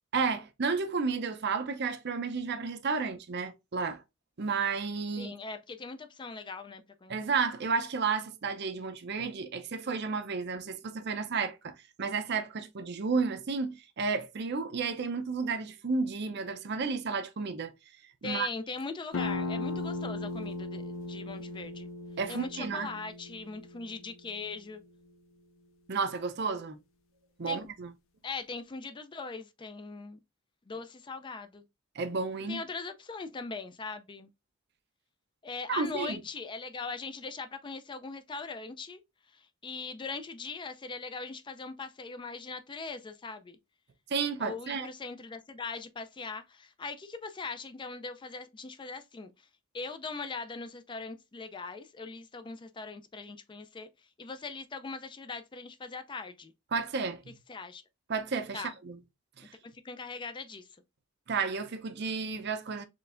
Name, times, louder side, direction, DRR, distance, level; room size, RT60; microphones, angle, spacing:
voice 1, 0.1-4.0 4.4-5.3 7.1-17.7 18.2-18.5 22.2-22.9 25.9-26.8 27.4-27.9 32.0-32.6 35.7-36.2 44.1-44.9 56.7-57.3 58.1-59.0 59.4-59.5 61.3-62.8, right 5 dB, 55° right, 0.6 m, -32 dB
voice 2, 5.2-7.2 18.2-21.9 22.3-24.8 27.5-27.7 28.2-30.2 30.6-31.6 32.5-34.3 35.4-39.0 39.3-43.6 44.4-49.5 49.7-53.9 54.2-56.5 57.5-57.8 58.5-58.7 59.8-60.7, left 4 dB, 25° left, 0.4 m, -40 dB
sound 1, 19.1-24.5, left 3 dB, 75° left, 0.5 m, -37 dB
4.4 x 3.2 x 2.5 m
head